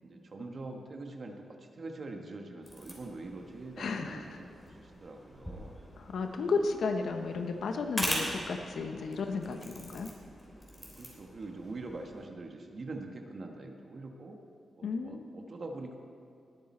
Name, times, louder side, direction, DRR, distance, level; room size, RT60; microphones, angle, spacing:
voice 1, 0.0-5.8 11.0-14.4 14.8-16.0, right 2 dB, 45° right, 3 dB, 1.2 m, -44 dB
sound 1, 2.6-12.3, equal, 10° left, 3.0 m, -42 dB
voice 2, 3.8-4.4 6.0-10.1 14.8-15.3, left 4 dB, 75° left, 5 dB, 0.8 m, -33 dB
19.5 x 8.8 x 4.3 m, 2.6 s
wide cardioid pair, 105°, 0 cm